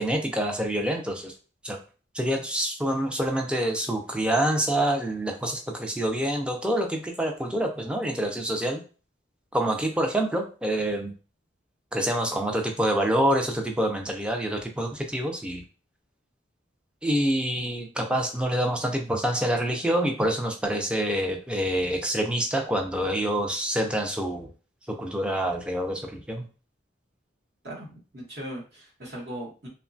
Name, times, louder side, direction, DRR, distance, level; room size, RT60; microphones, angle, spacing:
voice 1, 0.0-1.3 1.6-1.8 2.1-8.8 9.5-11.1 11.9-15.6 17.0-24.5 24.9-26.4, right 1 dB, 5° right, 3 dB, 0.4 m, -26 dB
voice 2, 27.6-29.7, right 1 dB, 55° right, -2 dB, 1.0 m, -39 dB
3.0 x 2.2 x 2.5 m, 0.35 s
head